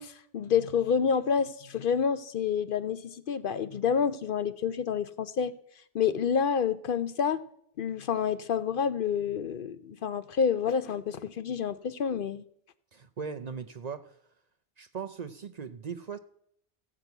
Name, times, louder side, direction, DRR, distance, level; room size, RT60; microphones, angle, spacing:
voice 1, 0.0-5.5 5.9-7.4 7.8-12.4, left 7 dB, 60° left, 0.7 m, -28 dB
voice 2, 12.9-14.2 14.8-16.2, right 6 dB, 45° right, 0.6 m, -39 dB
15.0 x 6.0 x 8.0 m
omnidirectional pair, 1.1 m